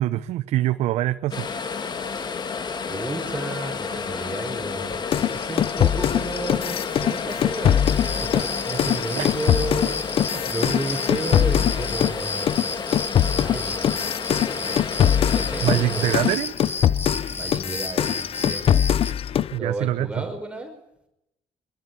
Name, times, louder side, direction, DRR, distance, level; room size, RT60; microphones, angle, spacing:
voice 1, 0.0-1.8 9.2-9.3 15.6-16.5 19.5-20.1, right 14 dB, 85° right, 10 dB, 0.9 m, -24 dB
sound 1, 1.3-16.4, left 5 dB, 40° left, 2.2 m, -31 dB
voice 2, 2.9-12.8 13.3-14.0 14.5-14.7 15.1-16.2 17.3-18.7 19.5-20.8, right 1 dB, 10° right, 3 dB, 5.4 m, -32 dB
sound 2, 5.1-12.2 12.5-19.6, left 10 dB, 60° left, 0.9 m, -22 dB
sound 3, 7.9-19.1, left 3 dB, 20° left, 1.7 m, -33 dB
24.5 x 21.5 x 8.6 m, 0.82 s
cardioid pair, 100°, 11 cm